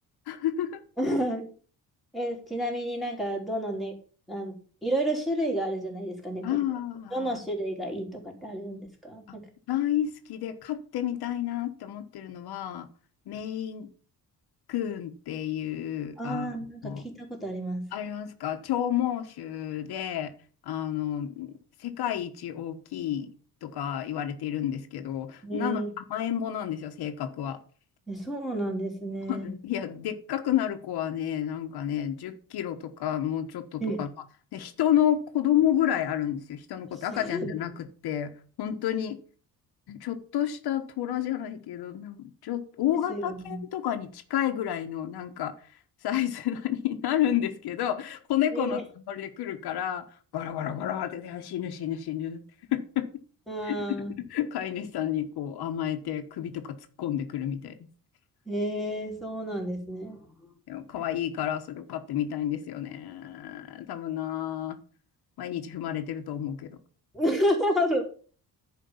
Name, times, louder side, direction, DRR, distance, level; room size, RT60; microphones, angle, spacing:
voice 1, 0.3-0.8 6.4-7.4 9.3-9.4 9.7-12.9 13.3-13.9 14.7-16.5 16.8-17.1 17.9-20.3 20.6-23.3 23.6-27.6 29.3-34.1 34.5-38.3 38.6-39.2 39.9-45.5 46.0-50.1 50.3-52.4 52.7-53.1 53.6-57.8 60.7-64.8 65.4-66.8, left 11 dB, 80° left, 7 dB, 1.3 m, -30 dB
voice 2, 1.0-1.5 2.1-3.9 4.3-4.5 4.8-6.6 7.1-9.4 16.2-17.8 25.4-25.9 28.1-29.5 33.8-34.0 37.1-37.5 43.1-43.6 48.5-48.8 53.5-54.2 58.5-60.2 67.1-68.0, equal, ahead, -1 dB, 3.1 m, -30 dB
10.5 x 5.1 x 7.2 m, 0.41 s
cardioid pair, 135°, 38 cm